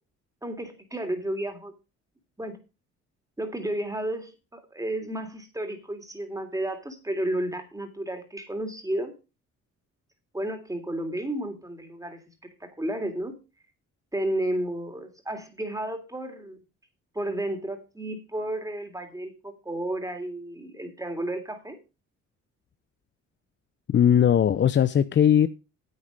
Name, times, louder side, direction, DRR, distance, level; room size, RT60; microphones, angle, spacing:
voice 1, 0.4-1.7 2.4-2.6 3.4-9.1 10.3-12.2 12.6-13.3 14.1-16.6 17.1-21.8, right 1 dB, 10° right, 3.2 m, -32 dB
voice 2, 23.9-25.5, left 9 dB, 40° left, 0.5 m, -19 dB
9.6 x 8.5 x 5.2 m
cardioid pair, 90°, 30 cm